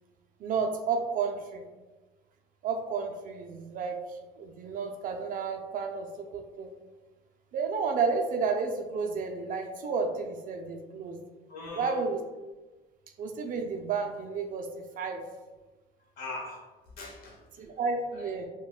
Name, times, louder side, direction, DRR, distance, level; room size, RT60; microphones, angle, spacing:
voice 1, 0.4-1.6 2.6-6.7 7.5-11.2 11.8-12.2 13.2-14.7 15.0-15.2 17.6-18.4, right 5 dB, 55° right, 4 dB, 0.4 m, -31 dB
voice 2, 11.5-12.1 16.0-17.7 18.1-18.4, left 2 dB, 65° left, -1 dB, 0.9 m, -42 dB
4.2 x 2.2 x 2.4 m, 1.2 s
cardioid pair, 110°, 17 cm